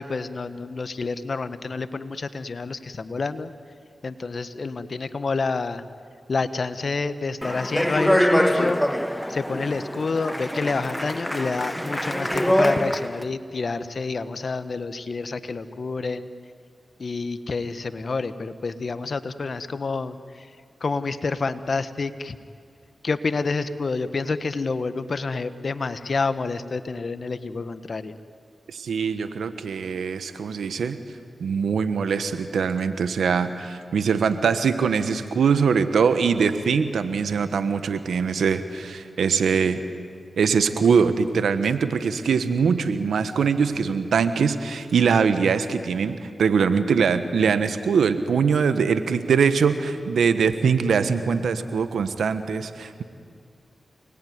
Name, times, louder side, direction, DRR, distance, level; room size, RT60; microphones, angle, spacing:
voice 1, 0.0-3.5 4.0-5.8 6.3-8.8 9.3-16.3 17.0-20.5 20.8-22.4 23.0-28.2, left 4 dB, 60° left, 12 dB, 1.3 m, -28 dB
Speech, 7.4-13.2, equal, 5° left, 1.4 m, -24 dB
voice 2, 28.7-31.0 31.4-39.8 40.4-53.0, right 6 dB, 85° right, 11 dB, 1.4 m, -22 dB
28.5 x 20.5 x 9.6 m, 2.4 s
cardioid pair, 40°, 0 cm